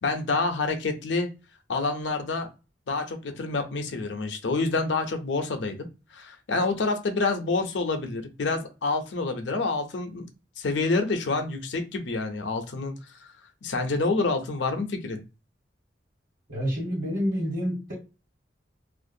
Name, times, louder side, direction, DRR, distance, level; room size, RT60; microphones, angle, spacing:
voice 1, 0.0-1.3 1.7-2.5 2.9-5.9 6.1-10.3 10.6-13.3 13.6-15.2, left 3 dB, 75° left, 6 dB, 0.5 m, -28 dB
voice 2, 16.5-17.9, equal, 45° right, -4 dB, 1.2 m, -28 dB
2.4 x 2.1 x 2.6 m, 0.29 s
head